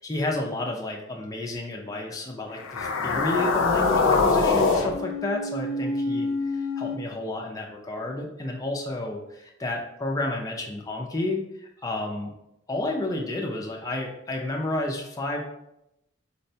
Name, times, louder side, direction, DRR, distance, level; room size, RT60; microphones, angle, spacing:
voice 1, 0.0-12.3 12.7-15.4, left 2 dB, 15° left, 0 dB, 0.3 m, -31 dB
sound 1, 2.6-7.0, left 4 dB, 80° left, 0.4 m, -24 dB
4.3 x 2.1 x 2.7 m, 0.84 s
head